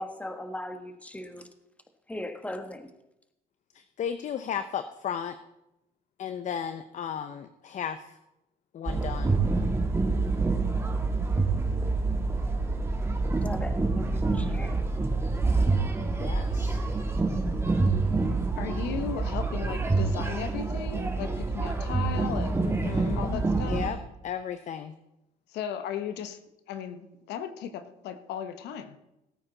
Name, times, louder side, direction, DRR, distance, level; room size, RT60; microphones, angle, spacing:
voice 1, 0.0-1.5 2.1-2.9 13.4-14.8, left 1 dB, 10° left, 7 dB, 1.2 m, -38 dB
voice 2, 3.7-5.4 6.2-8.2 8.7-9.4 16.1-16.8 22.6-24.0 24.2-24.9, left 8 dB, 45° left, 10 dB, 0.7 m, -35 dB
sound 1, 8.9-23.9, right 3 dB, 15° right, 1.7 m, -27 dB
voice 3, 18.5-23.8 25.5-26.4 26.7-27.0 27.3-29.0, left 8 dB, 80° left, 10 dB, 1.0 m, -36 dB
18.0 x 8.7 x 3.9 m, 0.91 s
cardioid pair, 110°, 17 cm